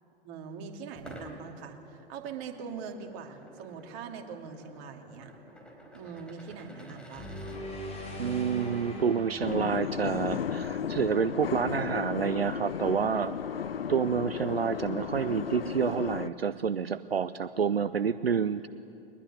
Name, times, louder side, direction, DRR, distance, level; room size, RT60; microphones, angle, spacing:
voice 1, 0.2-5.3 5.9-7.3, right 6 dB, 35° right, 3 dB, 2.8 m, -42 dB
sound 1, 0.9-7.6, equal, 5° left, 4.6 m, -50 dB
sound 2, 7.1-11.4, equal, 20° left, 6.9 m, -41 dB
voice 2, 8.2-13.3 13.9-18.7, right 7 dB, 80° right, 14 dB, 0.7 m, -28 dB
sound 3, 9.4-16.3, left 8 dB, 70° left, 0.8 m, -34 dB
22.0 x 20.5 x 9.7 m, 2.7 s
figure-of-eight pair, 105°, 30 cm